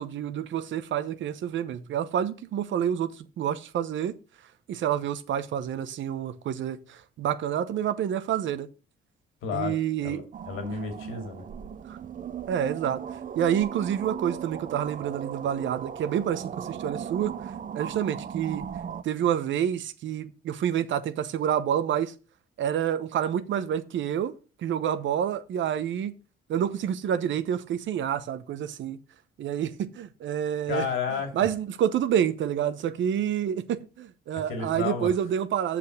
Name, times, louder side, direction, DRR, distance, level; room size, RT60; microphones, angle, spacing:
voice 1, 0.0-4.1 4.7-8.7 9.5-10.2 11.9-12.0 12.5-13.0 13.3-18.6 19.0-22.1 22.6-24.3 24.6-26.2 26.5-29.0 29.4-30.9 31.3-35.8, right 9 dB, 70° right, 0.9 m, -28 dB
voice 2, 9.4-9.8 10.0-11.4 30.7-31.3 34.5-35.1, left 6 dB, 90° left, 2.6 m, -31 dB
sound 1, 10.3-19.0, right 8 dB, 40° right, 0.6 m, -37 dB
7.5 x 6.0 x 6.5 m
cardioid pair, 90°, 20 cm